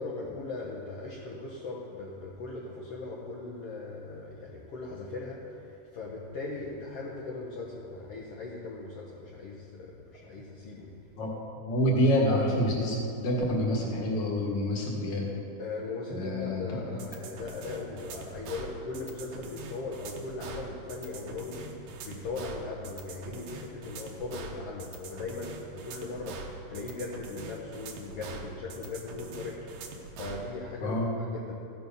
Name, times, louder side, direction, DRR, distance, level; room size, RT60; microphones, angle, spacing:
voice 1, 0.0-11.0 15.6-29.7 30.1-31.5, left 3 dB, 65° left, -3 dB, 1.5 m, -39 dB
voice 2, 11.7-15.3 16.1-16.6 30.8-31.1, equal, 45° left, -2 dB, 1.8 m, -27 dB
sound 1, 17.0-30.5, right 4 dB, 70° right, 2.3 m, -43 dB
15.0 x 6.8 x 5.3 m, 2.6 s
omnidirectional pair, 3.9 m